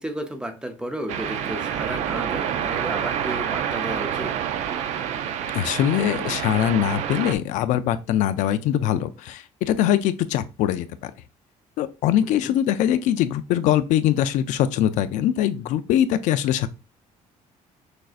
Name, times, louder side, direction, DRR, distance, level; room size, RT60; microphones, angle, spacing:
voice 1, 0.0-4.4 12.2-12.6, equal, 5° right, 0.5 m, -33 dB
sound 1, 1.1-7.3, right 9 dB, 65° right, 0.5 m, -28 dB
voice 2, 5.5-11.1 11.8-16.7, left 11 dB, 70° left, 0.4 m, -22 dB
6.2 x 2.6 x 2.4 m
cardioid pair, 165°, 13 cm